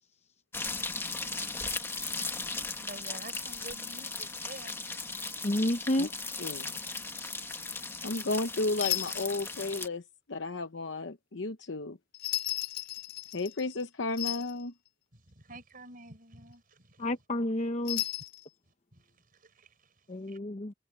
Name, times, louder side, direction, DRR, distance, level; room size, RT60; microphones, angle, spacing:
sound 1, 0.5-9.9, left 3 dB, 15° left, 1.7 m, -37 dB
voice 1, 1.2-1.6 2.5-4.8 5.2-5.4 7.8-7.9 15.1-17.1 18.6-20.4, right 2 dB, 50° right, 5.1 m, -50 dB
voice 2, 5.4-6.1 17.0-18.0 20.1-20.7, left 1 dB, 35° left, 0.9 m, -30 dB
voice 3, 6.4-6.8 8.0-12.0 13.3-14.7, left 2 dB, 70° left, 0.9 m, -33 dB
sound 2, 8.8-9.4 12.1-13.8 14.1-14.6 17.9-18.4, left 17 dB, 55° left, 6.2 m, -35 dB
head